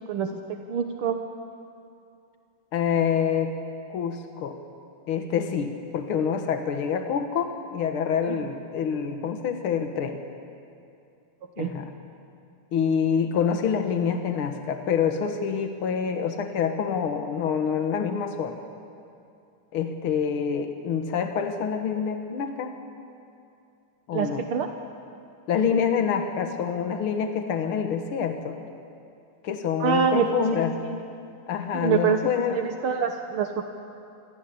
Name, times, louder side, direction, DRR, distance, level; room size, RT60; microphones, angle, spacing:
voice 1, 0.7-1.2 8.3-8.4 11.6-11.7 24.1-24.7 29.8-30.4 30.9-31.0 31.7-32.2 32.5-33.6, right 7 dB, 75° right, 5 dB, 2.0 m, -25 dB
voice 2, 2.7-3.5 3.9-4.6 5.1-10.2 11.6-11.9 12.7-18.6 19.7-22.8 24.1-24.4 25.5-28.6 29.4-30.7 31.5-32.6, left 7 dB, 75° left, 6 dB, 2.3 m, -26 dB
27.5 x 23.5 x 8.5 m, 2.5 s
omnidirectional pair, 2.4 m